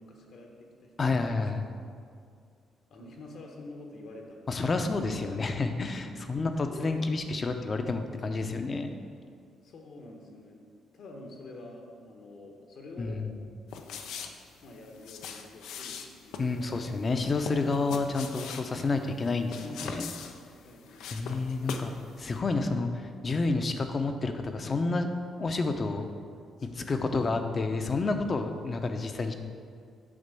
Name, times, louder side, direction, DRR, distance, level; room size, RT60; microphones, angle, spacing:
voice 1, 0.0-0.9 1.3-1.4 2.9-5.0 6.3-7.0 9.6-10.6 10.9-13.2 13.7-14.0 14.6-16.8 20.6-21.8 22.2-22.3 26.6-26.9, left 2 dB, 70° left, 1 dB, 1.5 m, -48 dB
voice 2, 1.0-1.6 4.5-8.9 13.0-13.4 16.4-20.1 21.1-21.9 22.2-25.1 25.4-26.1 26.7-29.3, left 3 dB, 40° left, 6 dB, 0.7 m, -29 dB
sound 1, 13.7-22.0 22.3-22.4, left 6 dB, 85° left, 0.6 m, -42 dB
8.7 x 3.6 x 6.8 m, 2.2 s
cardioid pair, 90°, 0 cm